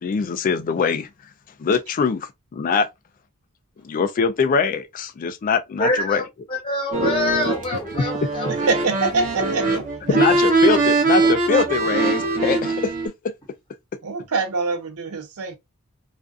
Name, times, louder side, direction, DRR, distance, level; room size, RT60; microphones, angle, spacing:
voice 1, 0.0-1.1 1.6-2.9 3.8-6.2 10.1-12.9, left 5 dB, 40° left, 0.3 m, -22 dB
voice 2, 5.8-6.2 6.5-8.7, left 2 dB, 25° left, 1.1 m, -25 dB
sound 1, 6.9-13.1, right 3 dB, 35° right, 0.7 m, -21 dB
voice 3, 8.5-9.8 10.1-10.2 14.0-15.6, right 3 dB, 85° right, 0.6 m, -24 dB
2.4 x 2.3 x 2.3 m
head